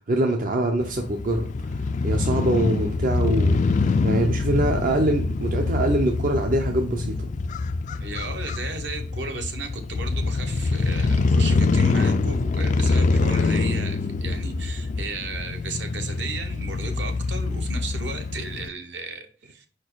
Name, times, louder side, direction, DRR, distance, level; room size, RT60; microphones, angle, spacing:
voice 1, 0.1-1.5 2.0-3.6 4.0-7.2, right 1 dB, 50° right, 0.5 m, -23 dB
Crow / Motorcycle, 0.8-18.7, left 3 dB, 40° left, 0.3 m, -24 dB
voice 2, 8.0-19.7, right 3 dB, 65° right, 1.0 m, -35 dB
4.9 x 4.4 x 4.5 m
head